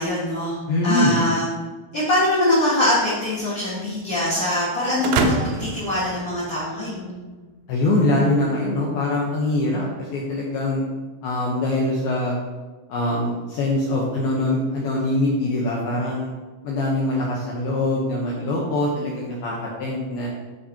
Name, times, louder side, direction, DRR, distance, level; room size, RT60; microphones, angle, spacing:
voice 1, 0.0-0.6 0.8-1.5 1.9-7.3, left 1 dB, 60° left, -7 dB, 1.8 m, -23 dB
voice 2, 0.7-1.2 7.7-10.9 11.2-12.4 12.9-16.3 16.6-20.3, left 1 dB, 80° left, -3 dB, 2.2 m, -23 dB
sound 1, 5.0-7.0, right 4 dB, 80° right, 2.7 m, -26 dB
12.0 x 5.4 x 2.8 m, 1.3 s
omnidirectional pair, 5.5 m